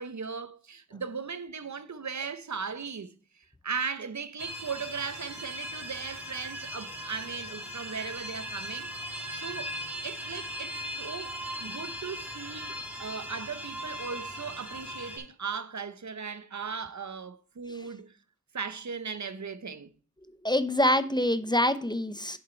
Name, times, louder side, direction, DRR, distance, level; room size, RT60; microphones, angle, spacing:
voice 1, 0.0-9.8 10.0-18.2 18.5-19.9, right 5 dB, 65° right, 0.8 m, -38 dB
sound 1, 4.4-15.2, equal, 5° right, 4.2 m, -39 dB
voice 2, 20.4-22.4, left 1 dB, 15° left, 0.7 m, -25 dB
8.0 x 7.4 x 4.4 m
wide cardioid pair, 45°, 30 cm